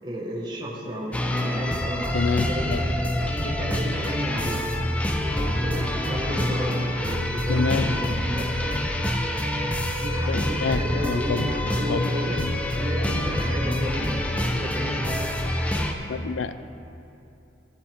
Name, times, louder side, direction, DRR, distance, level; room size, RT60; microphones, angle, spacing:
voice 1, 0.0-2.8 3.1-4.7 5.4-8.7 9.9-12.4 12.7-14.2 14.5-15.2, equal, 20° right, -4 dB, 1.4 m, -32 dB
sound 1, 1.1-15.9, left 1 dB, 5° left, 0.6 m, -26 dB
voice 2, 2.1-2.8 7.5-7.9 10.3-11.5 11.9-12.1 12.4-12.6 16.1-16.5, left 5 dB, 85° left, 13 dB, 0.4 m, -27 dB
12.5 x 10.5 x 3.6 m, 2.8 s
head